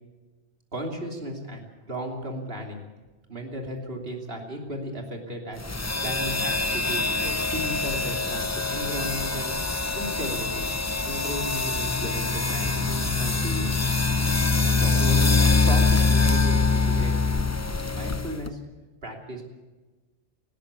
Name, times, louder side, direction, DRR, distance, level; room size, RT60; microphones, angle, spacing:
voice 1, 0.7-2.8 3.3-5.6 6.0-9.5 9.9-10.7 11.0-13.8 14.8-15.3 15.6-17.1 17.9-18.6 19.0-19.4, equal, 65° right, 1 dB, 3.3 m, -35 dB
sound 1, 5.6-18.5, left 4 dB, 15° left, 0.8 m, -24 dB
19.0 x 17.0 x 8.3 m, 1.2 s
omnidirectional pair, 1.1 m